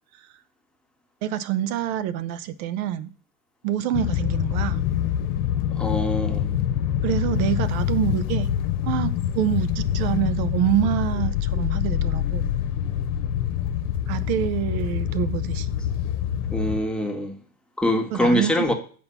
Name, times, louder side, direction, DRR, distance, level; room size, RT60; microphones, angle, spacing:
voice 1, 1.2-3.1 3.6-4.8 7.0-8.5 8.8-12.5 14.1-15.7 18.1-18.6, right 11 dB, 65° right, 0.7 m, -26 dB
sound 1, 3.9-16.8, left 10 dB, 75° left, 1.0 m, -25 dB
voice 2, 5.7-6.5 16.5-17.4 17.8-18.7, left 1 dB, ahead, 1.4 m, -24 dB
8.4 x 4.1 x 7.0 m
supercardioid pair, 120°, 45 cm